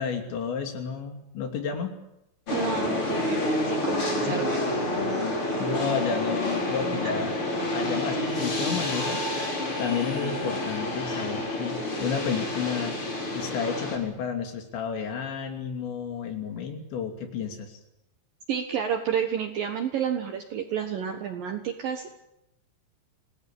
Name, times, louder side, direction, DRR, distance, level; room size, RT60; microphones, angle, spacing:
voice 1, 0.0-2.0 4.3-4.5 5.5-7.3 7.7-9.2 9.8-13.0 13.3-17.8, left 6 dB, 65° left, 5 dB, 4.9 m, -31 dB
sound 1, 2.5-14.0, left 1 dB, 25° left, 5.0 m, -28 dB
voice 2, 2.5-4.6 8.2-8.5 18.5-22.1, right 8 dB, 65° right, 6 dB, 2.3 m, -30 dB
27.5 x 18.5 x 8.8 m, 0.86 s
omnidirectional pair, 5.7 m